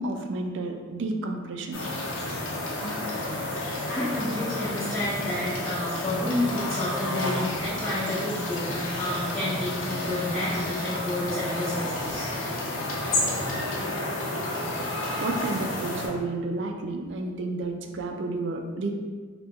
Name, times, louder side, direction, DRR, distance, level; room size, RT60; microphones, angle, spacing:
voice 1, 0.0-1.8 9.3-9.4 15.2-18.9, right 2 dB, 65° right, 4 dB, 0.3 m, -31 dB
sound 1, 1.7-16.1, left 1 dB, 90° left, 0.6 m, -30 dB
voice 2, 3.9-12.3, left 1 dB, 10° left, -12 dB, 0.6 m, -30 dB
2.9 x 2.2 x 3.4 m, 1.5 s
head